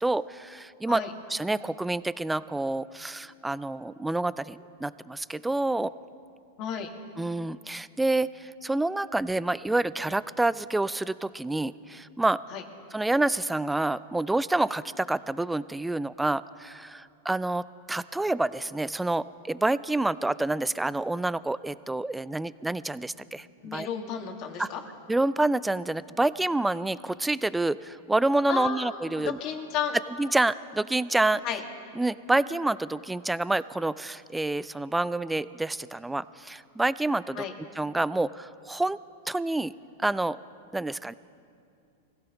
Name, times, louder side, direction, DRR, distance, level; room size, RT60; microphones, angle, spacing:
voice 1, 0.0-1.0 1.3-5.9 7.2-12.4 12.9-23.5 23.7-23.9 24.6-24.7 25.1-29.4 30.2-31.4 32.0-37.4 37.8-39.0 39.3-39.7 40.0-40.4 40.7-41.1, right 2 dB, 5° right, 17 dB, 0.3 m, -28 dB
voice 2, 6.6-6.9 12.5-12.6 23.6-24.8 28.5-28.9 29.2-29.9 31.4-31.6 37.3-37.5, left 8 dB, 45° left, 3 dB, 1.9 m, -32 dB
24.0 x 16.0 x 3.0 m, 2.5 s
hypercardioid pair, 125°, 0 cm